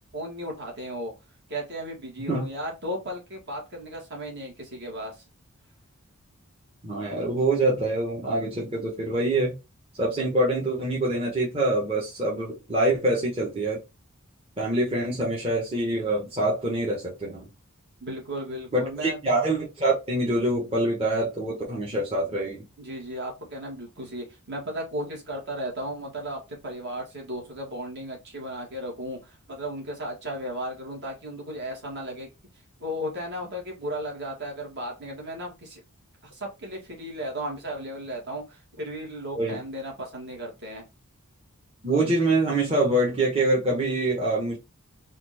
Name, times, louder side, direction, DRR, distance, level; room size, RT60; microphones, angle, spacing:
voice 1, 0.1-1.1 1.5-5.1 18.0-19.2 22.8-32.3 32.8-35.8 36.2-40.9, equal, 50° right, 1.9 m, -35 dB
voice 2, 6.8-9.5 10.0-13.8 14.6-17.5 18.7-22.7 39.3-39.6 41.8-44.6, right 2 dB, 25° right, 1.1 m, -25 dB
4.3 x 2.6 x 4.2 m
head